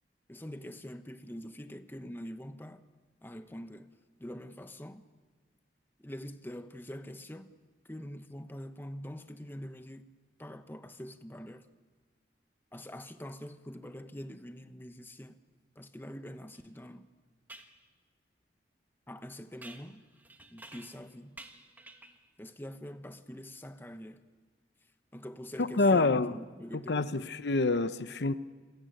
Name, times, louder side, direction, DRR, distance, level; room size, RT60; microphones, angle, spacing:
voice 1, 0.3-2.8 3.2-3.9 4.2-5.0 6.0-7.5 7.9-10.1 10.4-11.7 12.7-15.4 15.8-17.1 19.1-20.0 20.5-21.3 22.4-24.2 25.1-27.3, equal, 10° left, 1.0 m, -44 dB
sound 1, 16.5-16.6 17.5-17.8 19.6-21.1 21.4-22.2, right 2 dB, 10° right, 1.6 m, -51 dB
voice 2, 25.6-26.4 26.7-28.3, left 3 dB, 75° left, 0.8 m, -27 dB
28.0 x 20.5 x 9.1 m
head